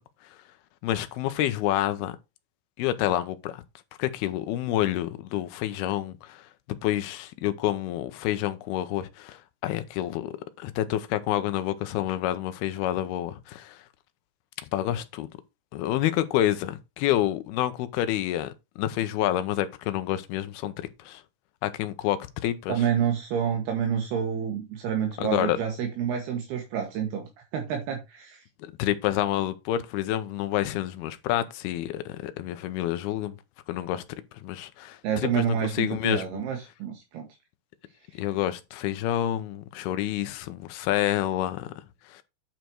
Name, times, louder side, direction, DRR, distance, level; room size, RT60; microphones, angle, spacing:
voice 1, 0.8-2.2 2.8-3.6 4.0-6.4 6.8-13.8 14.7-15.3 15.7-20.7 21.1-21.2 21.6-22.7 25.2-25.6 28.6-33.4 33.7-34.0 34.4-35.0 35.4-36.2 38.2-41.7 42.1-42.2, left 13 dB, 75° left, 2.5 m, -28 dB
voice 2, 22.7-28.4 35.0-37.3, right 8 dB, 70° right, 3.2 m, -28 dB
9.1 x 5.1 x 4.6 m
omnidirectional pair, 4.9 m